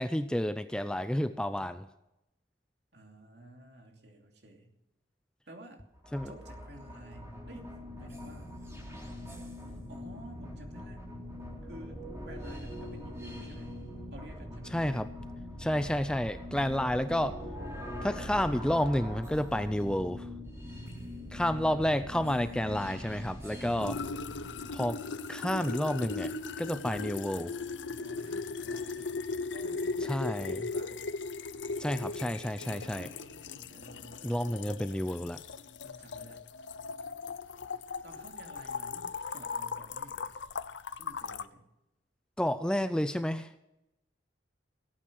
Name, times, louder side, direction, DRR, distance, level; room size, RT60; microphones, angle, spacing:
voice 1, 0.0-1.9 6.1-6.3 14.7-15.1 15.6-17.4 18.0-20.3 21.3-24.0 24.7-25.0 25.3-26.3 26.6-27.5 30.1-30.6 31.8-33.1 34.2-35.4 42.4-43.5, equal, 5° left, 11 dB, 0.4 m, -30 dB
voice 2, 2.9-4.7 5.5-5.8 6.2-8.5 9.9-11.0 11.6-13.8 14.1-14.8 21.5-22.5 23.5-24.2 28.0-31.1 32.6-35.5 35.8-36.5 38.0-40.3 41.0-41.7, right 1 dB, 65° right, 2 dB, 2.9 m, -52 dB
sound 1, 5.9-24.8, left 1 dB, 15° right, 3.7 m, -42 dB
sound 2, 23.8-41.5, left 4 dB, 80° left, 0.7 m, -38 dB
18.0 x 9.1 x 6.3 m, 0.88 s
head